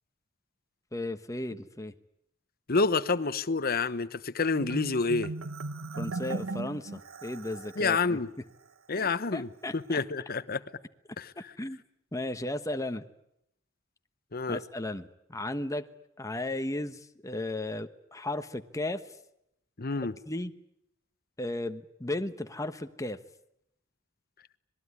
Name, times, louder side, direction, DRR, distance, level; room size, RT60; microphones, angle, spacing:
voice 1, 0.9-1.9 6.0-8.2 8.9-10.0 11.4-11.8 12.1-13.0 14.5-15.8 16.2-19.0 20.3-20.5 21.4-23.2, left 1 dB, 15° left, 8 dB, 1.2 m, -35 dB
voice 2, 2.7-5.3 7.8-8.3 8.9-10.6 11.2-11.3 14.3-14.6 19.8-20.1, left 4 dB, 50° left, 14 dB, 1.1 m, -28 dB
Marimba xylophone, 4.6-7.9, right 3 dB, 85° right, 1.2 m, -37 dB
26.0 x 20.5 x 9.8 m, 0.79 s
head